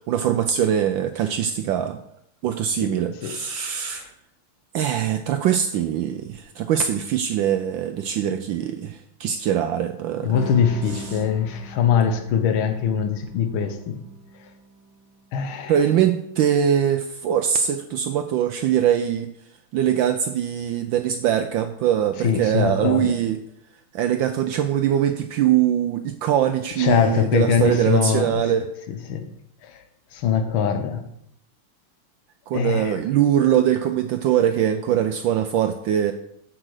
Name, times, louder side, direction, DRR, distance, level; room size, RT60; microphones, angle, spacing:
voice 1, 0.0-2.0 2.4-4.1 4.7-10.3 10.9-11.2 15.7-19.3 19.7-23.4 23.9-28.7 32.5-36.1, right 10 dB, 75° right, 8 dB, 1.2 m, -22 dB
voice 2, 10.2-14.0 15.3-15.7 22.2-23.2 26.8-28.3 28.9-29.3 29.6-29.8 30.1-31.0 32.5-32.9, left 7 dB, 70° left, 7 dB, 1.7 m, -22 dB
sound 1, 10.3-15.2, right 3 dB, 10° right, 0.9 m, -41 dB
7.9 x 7.7 x 4.8 m, 0.76 s
omnidirectional pair, 2.4 m